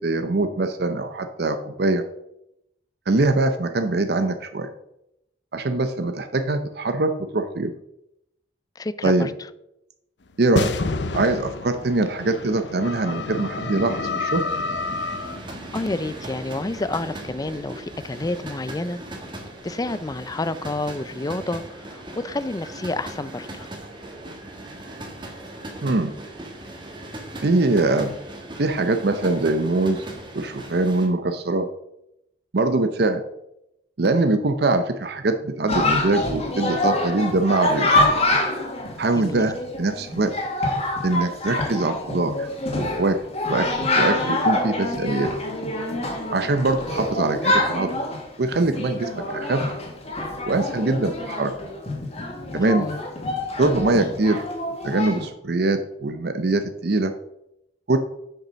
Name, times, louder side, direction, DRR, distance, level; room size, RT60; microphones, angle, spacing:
voice 1, 0.0-2.0 3.1-4.7 5.5-7.7 9.0-9.3 10.4-10.7 11.1-14.4 25.8-26.1 27.4-28.2 28.6-30.1 30.3-31.7 32.5-33.2 34.0-37.9 39.0-40.3 41.0-42.5 42.8-43.2 43.5-45.3 46.3-47.9 48.4-49.7 50.5-51.5 52.5-52.9 53.6-54.4 54.8-57.1 57.9-58.0, right 2 dB, 65° right, 0.7 m, -22 dB
voice 2, 8.8-9.5 15.7-19.0 19.6-23.7 39.2-39.5 52.5-53.0, left 2 dB, 20° left, 0.4 m, -29 dB
sound 1, 10.6-20.1, left 3 dB, 90° left, 0.7 m, -30 dB
sound 2, 13.7-31.1, right 1 dB, 25° right, 1.6 m, -39 dB
Chatter, 35.7-55.3, left 1 dB, 35° left, 1.9 m, -26 dB
7.4 x 5.5 x 6.2 m
head